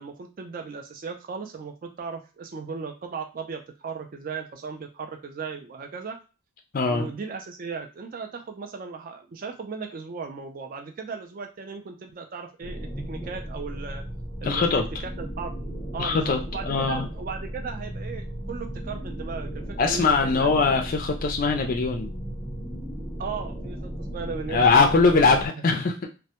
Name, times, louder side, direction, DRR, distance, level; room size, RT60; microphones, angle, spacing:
voice 1, 0.0-6.2 6.9-14.0 14.4-14.7 15.0-15.6 15.9-20.6 23.2-25.5, right 5 dB, 40° right, 4 dB, 0.3 m, -36 dB
voice 2, 6.7-7.1 14.4-14.9 16.0-17.1 19.8-22.1 24.5-26.1, left 4 dB, 40° left, 3 dB, 0.3 m, -22 dB
sound 1, 12.6-25.5, equal, ahead, 0.6 m, -35 dB
2.1 x 2.1 x 2.8 m, 0.32 s
head